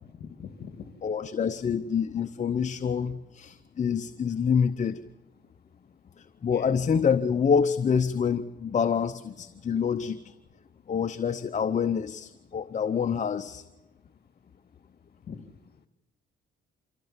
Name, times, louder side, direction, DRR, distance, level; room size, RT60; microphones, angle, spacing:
voice 1, 0.0-1.2 6.5-6.8 15.3-15.5, left 6 dB, 55° left, 9 dB, 1.9 m, -43 dB
voice 2, 1.0-5.0 6.2-10.3 10.9-13.6, left 6 dB, 35° left, 9 dB, 0.8 m, -27 dB
25.5 x 16.0 x 7.3 m, 1.1 s
cardioid pair, 90°, 20 cm